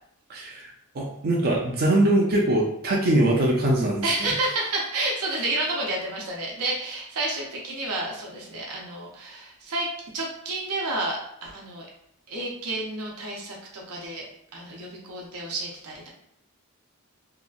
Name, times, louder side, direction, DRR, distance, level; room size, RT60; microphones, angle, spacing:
voice 1, 0.3-0.7 0.9-4.0, right 1 dB, 45° right, -2 dB, 0.5 m, -22 dB
voice 2, 4.0-11.9 12.3-16.1, right 2 dB, 85° right, -2 dB, 0.7 m, -30 dB
2.8 x 2.3 x 2.4 m, 0.74 s
head